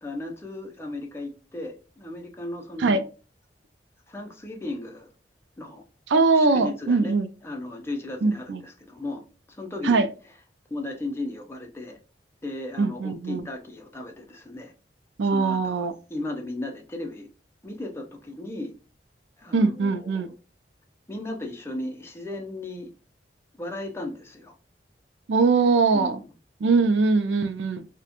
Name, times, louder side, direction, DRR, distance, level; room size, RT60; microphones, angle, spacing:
voice 1, 0.0-3.0 4.1-5.1 5.6-5.8 6.3-7.1 7.4-9.2 9.5-10.0 10.7-12.0 12.4-14.7 15.3-17.3 17.6-18.7 19.4-20.3 21.1-22.9 23.6-24.5 25.9-26.2, left 2 dB, 15° left, 0.5 m, -35 dB
voice 2, 6.1-7.3 8.2-8.6 9.8-10.1 12.8-13.5 15.2-15.9 19.5-20.3 25.3-26.2 26.6-27.9, right 4 dB, 80° right, 0.4 m, -21 dB
2.4 x 2.1 x 2.8 m
head